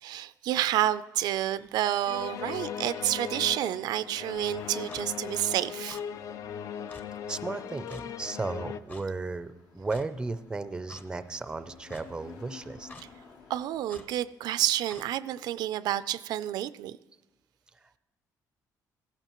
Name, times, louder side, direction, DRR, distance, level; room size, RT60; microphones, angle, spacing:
voice 1, 0.0-6.0 13.5-17.0, right 12 dB, 70° right, 15 dB, 0.4 m, -29 dB
sound 1, 1.2-14.2, left 5 dB, 80° left, 2.1 m, -54 dB
sound 2, 2.1-8.8, left 8 dB, 50° left, 0.4 m, -38 dB
Clock, 4.9-5.1 5.9-6.0 6.9-7.0 7.9-8.1 8.9-9.1 9.9-10.1 10.9-11.0 11.9-12.1 12.9-13.1 13.9-14.1 14.9-15.1, left 3 dB, 25° left, 0.7 m, -48 dB
voice 2, 7.3-12.9, right 3 dB, 10° right, 12 dB, 0.4 m, -35 dB
16.0 x 14.5 x 3.0 m, 1.1 s
cardioid pair, 165°, 7 cm